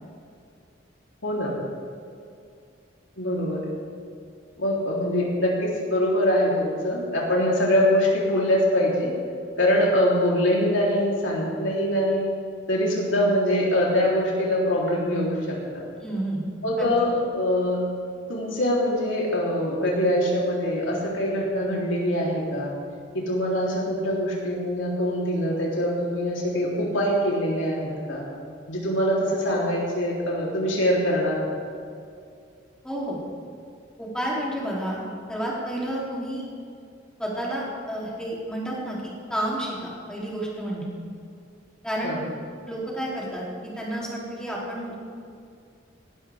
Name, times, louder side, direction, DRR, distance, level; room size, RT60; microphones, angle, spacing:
voice 1, 1.2-1.5 3.2-3.7 4.6-9.1 9.6-12.3 12.7-15.8 16.6-17.8 18.3-22.7 23.1-28.3 28.7-31.6 42.0-42.3, equal, 85° left, -4 dB, 3.7 m, -23 dB
voice 2, 16.0-16.4 16.8-16.9 32.8-33.2 34.0-35.0 35.3-36.4 37.2-40.9 41.8-42.2 42.7-45.0, right 1 dB, 5° left, -6 dB, 3.4 m, -30 dB
19.5 x 12.5 x 3.7 m, 2.3 s
head